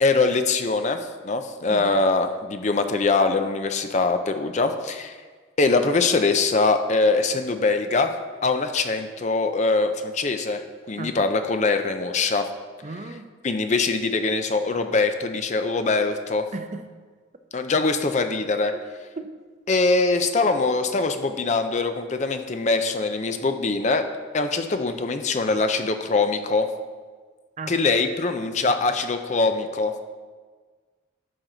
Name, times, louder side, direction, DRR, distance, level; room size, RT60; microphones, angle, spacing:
voice 1, 0.0-5.2 5.6-8.1 8.4-12.5 13.4-16.5 17.5-18.7 19.7-24.0 24.3-26.7 27.7-29.9, left 3 dB, 35° left, 7 dB, 0.5 m, -23 dB
voice 2, 12.8-13.3 16.5-16.8 18.7-18.8 19.2-19.3 27.6-27.7, right 2 dB, 35° right, 7 dB, 0.6 m, -35 dB
12.5 x 5.8 x 3.9 m, 1.5 s
head